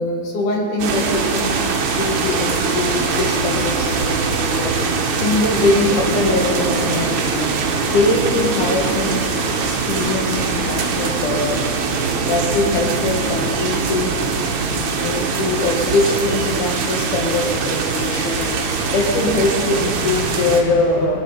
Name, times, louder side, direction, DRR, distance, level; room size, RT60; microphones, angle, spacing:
voice 1, 0.0-1.5 1.9-4.8 5.2-7.6 7.9-9.3 9.7-11.7 12.2-14.2 14.6-18.6 18.9-21.2, left 2 dB, 85° left, 0 dB, 3.0 m, -22 dB
sound 1, 0.8-20.6, right 5 dB, 70° right, 2.4 m, -22 dB
20.0 x 10.5 x 5.1 m, 2.6 s
omnidirectional pair, 3.5 m